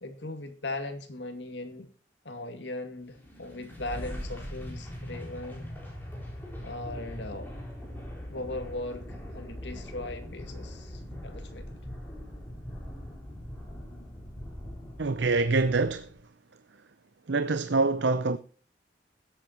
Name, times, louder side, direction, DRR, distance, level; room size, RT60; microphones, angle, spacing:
voice 1, 0.0-1.9 2.2-5.7 6.6-7.5 8.3-11.8, left 2 dB, 80° left, 2.3 m, -39 dB
sound 1, 3.1-16.2, equal, 10° left, 4.3 m, -41 dB
voice 2, 15.0-16.1 17.3-18.4, right 3 dB, 75° right, 0.7 m, -25 dB
21.5 x 8.6 x 2.9 m
head